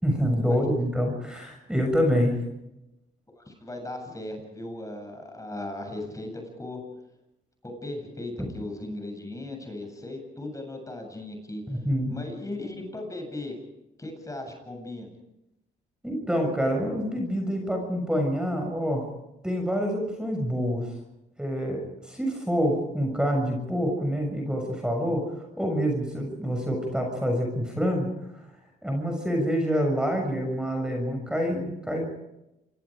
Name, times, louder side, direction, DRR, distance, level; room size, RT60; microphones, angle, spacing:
voice 1, 0.0-2.3 8.4-8.5 11.7-12.1 16.0-19.0 19.4-20.9 21.4-25.2 25.6-28.1 28.8-32.2, equal, 5° right, 2 dB, 6.7 m, -26 dB
voice 2, 3.4-6.8 7.6-11.6 12.1-13.6 14.0-15.1, left 2 dB, 15° left, 4 dB, 7.8 m, -37 dB
27.5 x 24.5 x 5.1 m, 0.88 s
cardioid pair, 90°, 20 cm